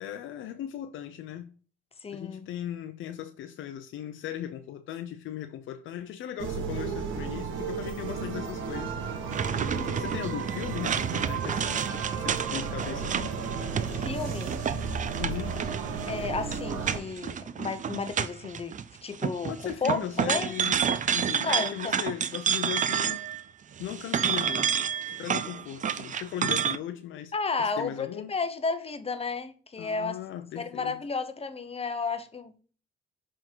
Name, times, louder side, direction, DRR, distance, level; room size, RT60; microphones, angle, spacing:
voice 1, 0.0-1.5 2.1-13.4 15.2-15.6 19.5-23.3 23.8-24.7 25.1-27.3 27.6-28.3 29.8-30.9, left 11 dB, 80° left, 0.6 m, -38 dB
voice 2, 2.0-2.5 13.8-14.5 16.1-19.5 19.8-20.0 20.3-20.5 21.4-22.0 27.3-30.2 30.5-32.6, left 4 dB, 30° left, 0.9 m, -32 dB
sound 1, 6.4-17.0, right 5 dB, 80° right, 1.2 m, -33 dB
sound 2, 9.3-18.8 19.1-23.4 23.8-26.8, right 7 dB, 40° right, 0.5 m, -30 dB
7.0 x 3.7 x 4.5 m
cardioid pair, 90°, 20 cm